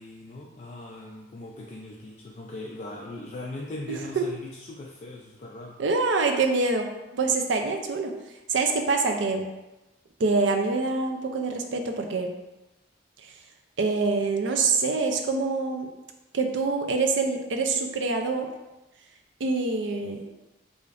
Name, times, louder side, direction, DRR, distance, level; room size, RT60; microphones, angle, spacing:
voice 1, 0.0-5.8, left 2 dB, 40° left, -2 dB, 0.3 m, -39 dB
voice 2, 3.9-4.2 5.8-6.9 7.1-8.1 8.5-9.5 10.2-12.3 13.8-15.9 16.3-18.5 19.4-20.2, right 3 dB, 70° right, 4 dB, 0.5 m, -25 dB
4.9 x 2.5 x 2.5 m, 1.0 s
head